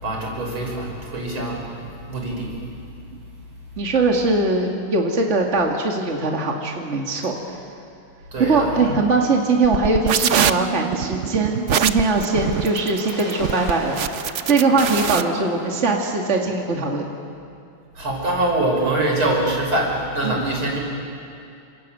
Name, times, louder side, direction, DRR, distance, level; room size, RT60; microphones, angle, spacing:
voice 1, 0.0-2.7 8.3-8.8 17.9-20.8, right 1 dB, 80° right, -1 dB, 6.6 m, -24 dB
voice 2, 3.8-7.4 8.4-17.1 20.2-20.4, right 3 dB, 35° right, 0 dB, 2.5 m, -21 dB
sound 1, 9.6-15.2, right 8 dB, 60° right, 0.7 m, -23 dB
Waves surf, 10.4-16.0, left 1 dB, 50° left, 5.0 m, -40 dB
28.0 x 26.5 x 7.7 m, 2.5 s
omnidirectional pair, 2.3 m